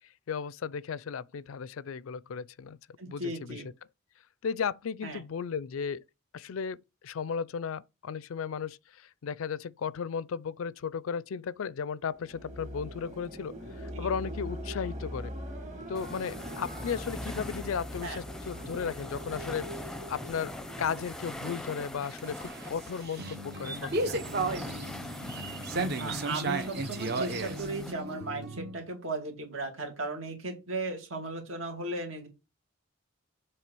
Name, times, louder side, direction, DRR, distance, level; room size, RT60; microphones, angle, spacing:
voice 1, 0.3-2.8 3.1-3.6 4.4-6.0 6.3-6.8 7.0-15.3 15.9-19.7 20.1-23.9, left 6 dB, 80° left, 0.4 m, -35 dB
voice 2, 3.0-3.7 5.0-5.2 13.9-14.1 18.0-18.2 23.8-24.1 26.0-32.3, right 2 dB, 70° right, 2.3 m, -36 dB
sound 1, 12.1-21.4, equal, 35° right, 2.0 m, -41 dB
sound 2, 15.9-27.9, left 1 dB, 5° left, 0.6 m, -42 dB
sound 3, 22.0-28.8, right 2 dB, 50° right, 1.0 m, -34 dB
7.4 x 3.2 x 6.0 m
head